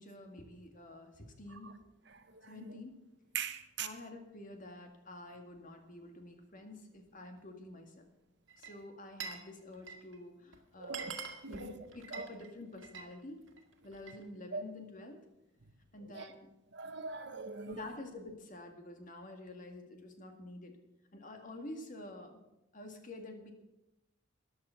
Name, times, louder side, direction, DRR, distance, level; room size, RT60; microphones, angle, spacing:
voice 1, 0.0-1.7 2.5-3.0 3.8-8.1 8.6-11.1 11.5-13.4 13.8-15.3 15.9-16.5 17.6-20.8 21.1-22.4 22.7-23.5, left 2 dB, 45° left, 2.0 m, -48 dB
voice 2, 3.3-3.9 10.8-11.1 11.4-11.8 12.1-12.3 14.5-14.6 16.1-16.3 16.7-17.8, right 5 dB, 65° right, 1.1 m, -40 dB
Glass, 8.5-9.5 9.7-10.2 10.5-10.6 10.8-13.1 13.5-14.2, right 5 dB, 80° right, 1.8 m, -45 dB
14.0 x 10.5 x 5.8 m
head